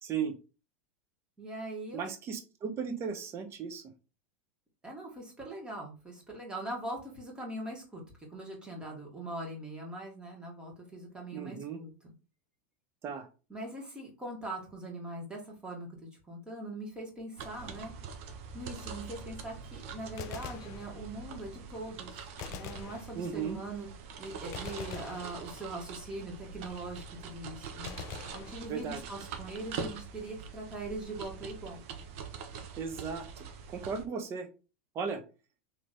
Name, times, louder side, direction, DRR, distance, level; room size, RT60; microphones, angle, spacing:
voice 1, 0.0-0.3 1.9-3.8 11.3-11.8 13.0-13.3 23.1-23.6 28.7-29.0 32.8-33.5 33.7-34.5 34.9-35.2, right 6 dB, 35° right, 6 dB, 0.9 m, -36 dB
voice 2, 1.4-2.0 4.8-8.0 8.3-11.9 13.5-17.9 18.5-23.9 24.2-28.0 28.3-31.8, right 1 dB, 10° right, -1 dB, 1.7 m, -41 dB
sound 1, 17.4-34.0, right 6 dB, 65° right, 0.8 m, -44 dB
Gunshot gunfire, 20.2-21.4 22.4-23.6 24.5-26.0 27.8-29.2, left 9 dB, 45° left, 0.5 m, -45 dB
3.1 x 3.0 x 4.0 m, 0.33 s
hypercardioid pair, 115°, 7 cm